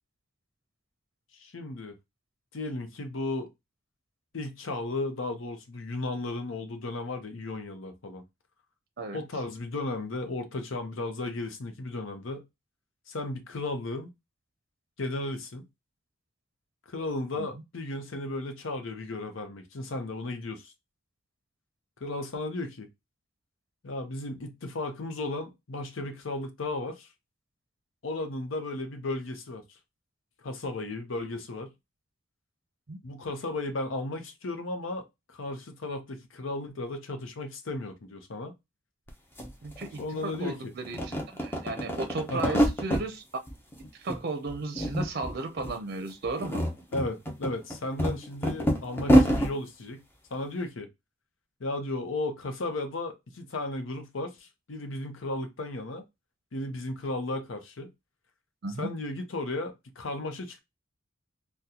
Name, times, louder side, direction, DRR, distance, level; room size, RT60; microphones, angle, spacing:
voice 1, 1.4-2.0 2.5-3.5 4.3-8.2 9.1-12.5 13.1-14.1 15.0-15.7 16.9-20.7 22.0-22.9 23.8-27.1 28.0-29.6 30.4-31.7 33.0-38.5 40.0-40.7 42.3-42.6 46.9-50.0 50.3-50.9 51.6-56.0 56.5-57.9 58.8-60.6, left 2 dB, 80° left, 0.7 m, -35 dB
sound 1, 39.1-39.2 39.4-40.5 40.8-43.1 43.5-44.2 44.5-45.3 45.6-45.7 46.2-49.5, equal, 10° left, 0.7 m, -26 dB
voice 2, 39.6-43.2 43.9-46.6 58.6-58.9, right 3 dB, 55° right, 0.5 m, -35 dB
3.7 x 2.2 x 2.8 m
head